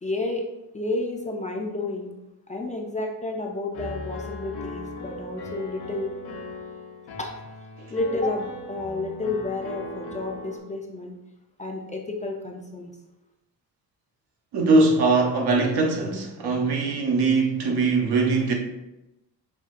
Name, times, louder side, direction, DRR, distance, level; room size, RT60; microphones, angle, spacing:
voice 1, 0.0-0.4 0.7-2.1 2.5-6.1 7.2-7.3 7.9-11.2 11.6-12.9, left 2 dB, 20° left, 0.4 m, -30 dB
Piano, 3.7-10.6, left 2 dB, 80° left, 0.8 m, -38 dB
voice 2, 14.5-18.5, right 3 dB, 80° right, 0.9 m, -21 dB
5.6 x 2.7 x 2.4 m
cardioid pair, 125°, 39 cm